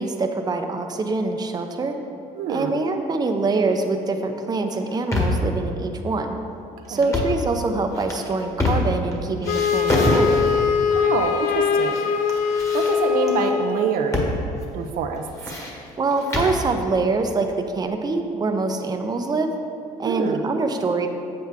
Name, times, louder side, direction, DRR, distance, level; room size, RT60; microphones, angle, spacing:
voice 1, 0.0-2.0 2.5-6.4 6.9-10.4 16.0-19.5 20.0-21.1, right 3 dB, 25° right, 5 dB, 0.7 m, -24 dB
voice 2, 2.3-2.8 6.9-7.2 10.9-12.1 12.7-14.3 14.7-15.5 20.0-20.4, right 6 dB, 75° right, 4 dB, 0.7 m, -26 dB
sound 1, 4.7-5.5 7.0-7.4 7.9-9.1 9.4-10.7 11.4-12.0 12.3-13.3 14.1-14.4 14.6-14.7 15.2-16.6, left 1 dB, 20° left, 1.6 m, -25 dB
Wind instrument woodwind instrument, 9.5-13.9, left 6 dB, 70° left, 0.5 m, -22 dB
7.6 x 7.5 x 3.6 m, 2.5 s
cardioid pair, 90°, 15 cm